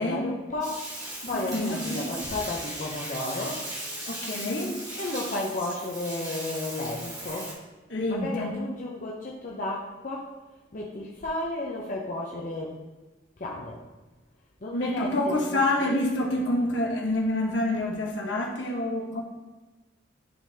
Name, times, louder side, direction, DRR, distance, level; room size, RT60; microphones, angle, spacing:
voice 1, 0.0-3.7 5.0-7.6 8.1-10.3 10.7-12.8 13.4-13.8 14.6-16.0, left 2 dB, 45° left, -3 dB, 0.6 m, -33 dB
Bathtub (filling or washing), 0.6-7.5, right 1 dB, 20° right, 1.5 m, -37 dB
voice 2, 1.3-2.1 4.1-4.7 7.9-8.5 14.7-19.2, left 1 dB, 70° left, 0 dB, 1.2 m, -27 dB
10.0 x 3.8 x 2.8 m, 1.2 s
head